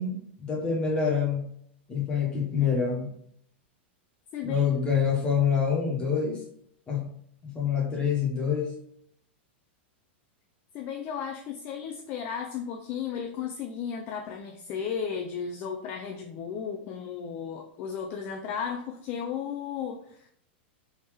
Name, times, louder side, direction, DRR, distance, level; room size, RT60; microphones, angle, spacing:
voice 1, 0.0-1.4 1.9-3.1 4.4-6.4 6.9-7.0 7.4-8.7, left 6 dB, 15° left, -2 dB, 1.2 m, -26 dB
voice 2, 4.3-4.7 10.7-20.3, left 7 dB, 35° left, 4 dB, 0.4 m, -34 dB
3.5 x 2.7 x 3.2 m, 0.68 s
supercardioid pair, 145°, 6 cm